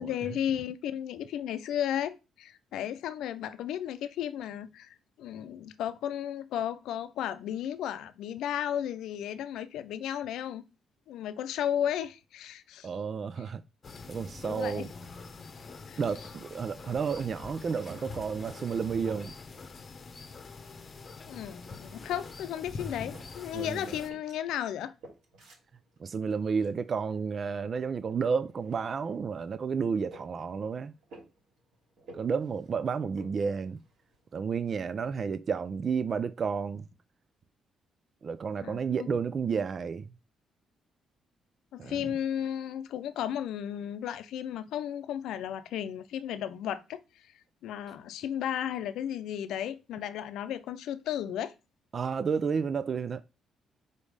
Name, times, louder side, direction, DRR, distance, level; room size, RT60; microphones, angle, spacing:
voice 1, 0.0-10.6 11.1-12.9 14.4-14.9 15.9-16.0 21.3-24.9 38.6-39.1 41.7-47.3 47.6-51.5, left 10 dB, 85° left, 0.6 m, -34 dB
voice 2, 12.8-13.6 14.1-14.9 16.0-19.4 23.5-23.9 26.0-30.9 32.1-33.8 34.3-36.8 38.2-40.1 41.8-42.0 51.9-53.2, right 6 dB, 45° right, 0.4 m, -31 dB
sound 1, 13.8-24.1, left 4 dB, 40° left, 0.9 m, -45 dB
sound 2, 16.6-34.4, right 1 dB, 80° right, 2.8 m, -58 dB
5.2 x 4.1 x 4.9 m
cardioid pair, 90°, 0 cm